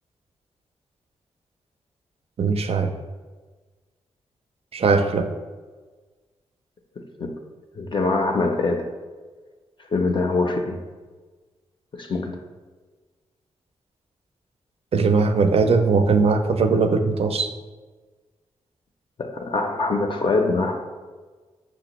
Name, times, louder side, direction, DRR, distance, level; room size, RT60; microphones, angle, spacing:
voice 1, 2.4-2.9 4.7-5.3 14.9-17.5, right 4 dB, 50° right, 7 dB, 0.4 m, -20 dB
voice 2, 7.8-8.9 9.9-10.8 11.9-12.4 19.2-20.8, left 3 dB, 40° left, 2 dB, 0.5 m, -23 dB
5.9 x 2.0 x 2.9 m, 1.4 s
supercardioid pair, 45°, 13 cm